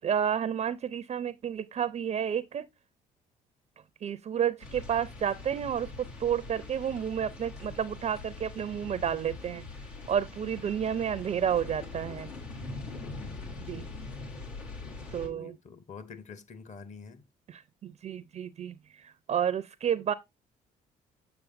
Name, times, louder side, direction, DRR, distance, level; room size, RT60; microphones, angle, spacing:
voice 1, 0.0-2.7 4.0-9.7 10.1-12.3 13.7-13.9 15.1-15.6 17.5-20.1, right 8 dB, 35° right, 0.4 m, -31 dB
sound 1, 4.6-15.3, left 3 dB, 85° left, 1.5 m, -43 dB
voice 2, 12.7-13.9 15.3-17.2, left 5 dB, 40° left, 0.9 m, -48 dB
6.9 x 6.5 x 2.6 m
hypercardioid pair, 55°, 18 cm